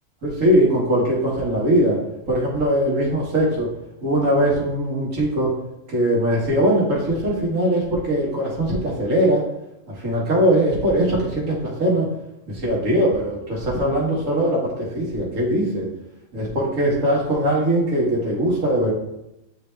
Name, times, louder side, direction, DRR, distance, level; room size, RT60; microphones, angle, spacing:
voice 1, 0.2-2.0 2.3-3.7 4.0-5.5 5.9-9.4 9.9-12.1 12.5-15.9 16.3-18.9, right 1 dB, 80° right, -4 dB, 1.8 m, -21 dB
9.2 x 3.3 x 3.2 m, 0.87 s
omnidirectional pair, 1.4 m